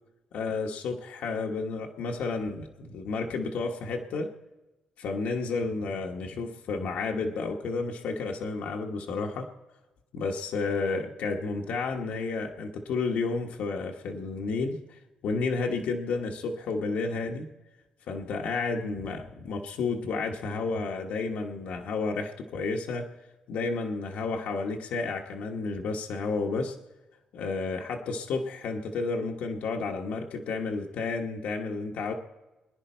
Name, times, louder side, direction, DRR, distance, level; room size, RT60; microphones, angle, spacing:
voice 1, 0.3-4.3 5.0-9.5 10.1-17.5 18.1-23.1 23.5-26.8 27.3-32.1, left 4 dB, 85° left, 2 dB, 1.2 m, -31 dB
23.5 x 10.5 x 4.4 m, 1.1 s
wide cardioid pair, 170°, 3 cm